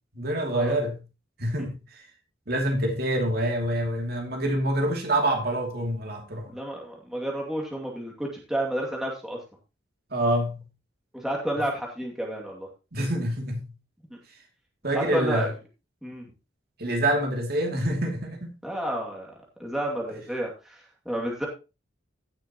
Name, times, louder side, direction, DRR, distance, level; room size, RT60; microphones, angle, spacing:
voice 1, 0.1-1.0 1.4-2.0 2.5-6.5 10.1-10.6 12.9-13.7 14.8-15.5 16.8-18.5, right 1 dB, 55° right, 2.6 m, -26 dB
voice 2, 6.5-9.4 11.1-12.7 14.1-14.2 14.9-15.5 16.0-16.3 18.6-19.3 19.6-21.5, right 1 dB, ahead, 2.3 m, -31 dB
16.0 x 6.6 x 2.9 m
head